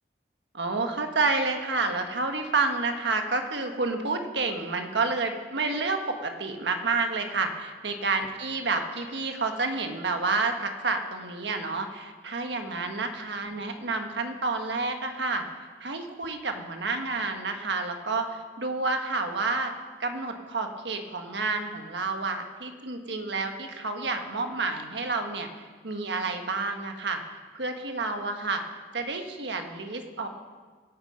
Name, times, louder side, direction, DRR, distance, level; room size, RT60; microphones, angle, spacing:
voice 1, 0.5-15.4 15.8-19.7 20.0-25.5 25.8-28.6 28.9-30.3, right 3 dB, 80° right, 5 dB, 1.4 m, -29 dB
17.5 x 8.6 x 5.3 m, 1.5 s
head